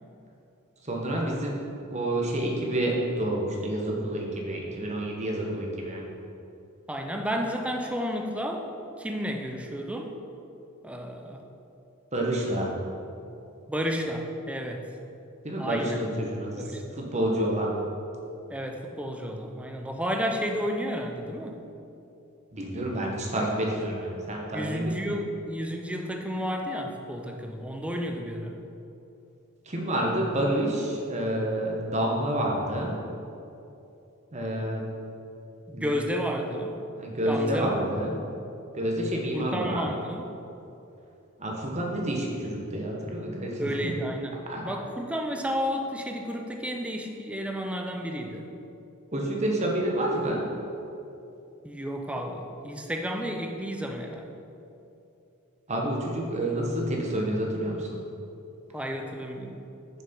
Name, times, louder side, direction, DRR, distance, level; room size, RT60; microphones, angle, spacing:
voice 1, 0.8-1.6 1.9-6.0 12.1-12.7 15.4-16.6 16.9-17.8 22.5-25.0 29.7-33.0 34.3-34.8 35.7-35.9 37.0-38.2 38.7-39.9 41.4-43.7 44.5-44.6 49.1-50.4 55.7-58.0, right 1 dB, 30° right, -1 dB, 1.2 m, -28 dB
voice 2, 6.9-8.7 9.0-10.1 10.8-11.4 13.7-14.9 15.6-16.0 16.6-17.0 18.5-21.6 24.5-28.5 35.7-36.8 37.2-37.7 39.3-40.3 43.6-48.4 51.6-54.3 58.7-59.6, equal, 5° right, 3 dB, 0.5 m, -32 dB
6.9 x 6.2 x 5.3 m, 2.9 s
head